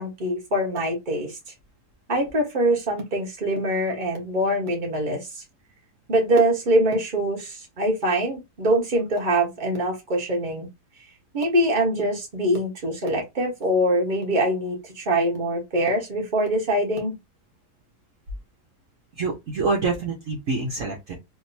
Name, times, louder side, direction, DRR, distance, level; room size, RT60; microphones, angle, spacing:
voice 1, 0.0-1.4 2.1-5.4 6.1-10.7 11.3-17.1, right 1 dB, 30° right, 1.3 m, -23 dB
voice 2, 19.2-21.1, right 3 dB, 55° right, 1.1 m, -26 dB
3.6 x 2.6 x 2.7 m
omnidirectional pair, 1.8 m